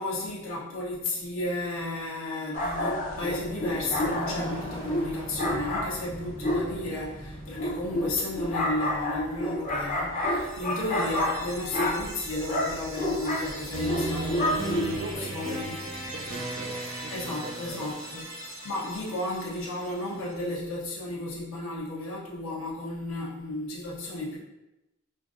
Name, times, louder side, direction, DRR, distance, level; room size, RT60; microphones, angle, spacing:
voice 1, 0.0-15.8 17.1-18.2 18.6-24.4, left 2 dB, 90° left, -6 dB, 1.0 m, -33 dB
sound 1, 2.5-15.1, left 1 dB, 40° left, 0.6 m, -30 dB
Motorcycle, 2.8-10.8, equal, 60° left, 1.3 m, -42 dB
sound 2, 10.3-20.3, right 2 dB, 85° right, 0.9 m, -38 dB
voice 2, 14.5-17.9, right 2 dB, 50° right, 4 dB, 0.4 m, -43 dB
4.3 x 2.6 x 2.5 m, 0.97 s
head